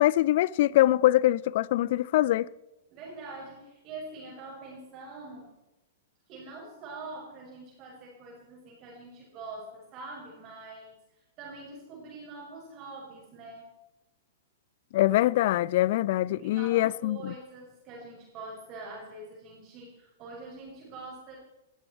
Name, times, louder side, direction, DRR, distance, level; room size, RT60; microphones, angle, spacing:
voice 1, 0.0-2.5 14.9-17.3, left 15 dB, 50° left, 0.5 m, -23 dB
voice 2, 2.9-5.5 6.3-11.0 11.4-13.7 16.3-21.4, right 3 dB, 35° right, 6.3 m, -44 dB
20.0 x 14.0 x 4.6 m
figure-of-eight pair, 105°, 0 cm